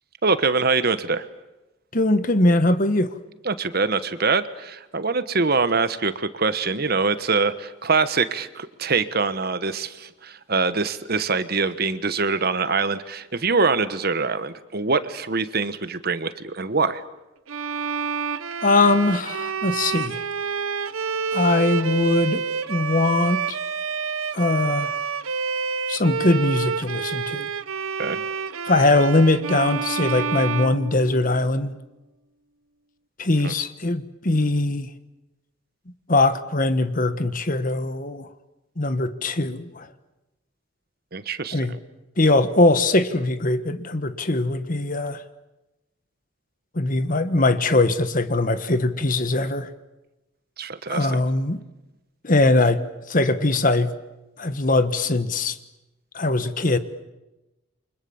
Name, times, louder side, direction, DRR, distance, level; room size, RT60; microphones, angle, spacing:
voice 1, 0.2-1.3 3.4-17.0 28.0-28.2 33.4-33.5 41.1-41.8 50.6-51.2, right 4 dB, 50° right, 12 dB, 1.3 m, -24 dB
voice 2, 1.9-3.1 18.6-20.2 21.3-22.4 22.7-23.6 24.3-24.9 25.9-27.5 28.7-31.7 33.2-34.9 36.1-38.3 38.8-39.9 41.5-41.7 42.2-45.2 46.7-49.7 50.9-51.6 52.2-53.9 54.4-55.6 56.1-56.8, left 2 dB, 40° left, 11 dB, 1.4 m, -21 dB
Bowed string instrument, 17.5-31.6, right 5 dB, 85° right, 0.9 m, -28 dB
29.0 x 25.0 x 7.2 m, 1.0 s
head